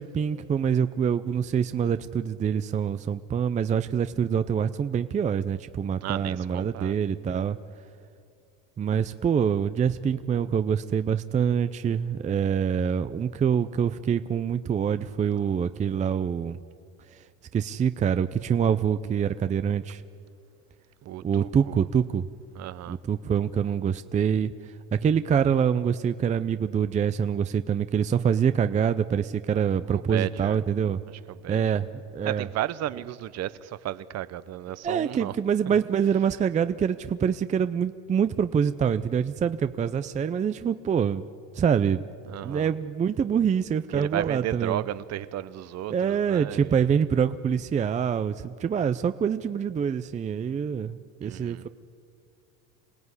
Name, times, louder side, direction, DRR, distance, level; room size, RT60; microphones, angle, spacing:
voice 1, 0.0-7.6 8.8-16.6 17.5-20.0 21.2-22.3 22.9-24.5 24.9-31.0 31.5-32.5 34.8-41.2 41.5-42.0 42.4-44.8 45.9-51.7, right 7 dB, 20° right, 0.5 m, -25 dB
voice 2, 6.0-6.9 21.0-21.8 22.5-23.0 29.9-30.6 31.3-31.6 32.2-35.3 42.2-42.7 43.9-46.9 51.2-51.7, right 13 dB, 45° right, 0.8 m, -34 dB
26.0 x 17.0 x 9.7 m
supercardioid pair, 120°, 36 cm